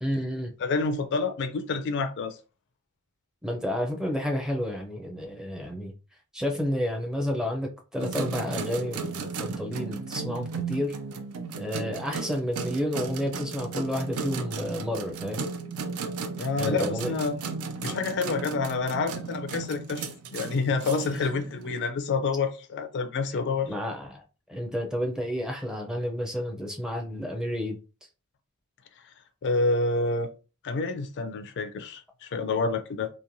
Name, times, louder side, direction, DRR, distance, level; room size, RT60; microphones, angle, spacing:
voice 1, 0.0-0.5 3.4-5.9 6.3-11.0 11.6-15.5 16.6-17.1 21.2-21.3 23.7-24.2 24.5-27.8, equal, 5° right, 0.5 m, -30 dB
voice 2, 0.6-2.4 16.4-17.4 17.8-20.0 20.3-23.7 29.4-30.3 30.6-33.1, left 3 dB, 55° left, 0.4 m, -28 dB
sound 1, 8.0-21.8, right 4 dB, 80° right, 0.4 m, -35 dB
3.0 x 2.1 x 2.6 m
head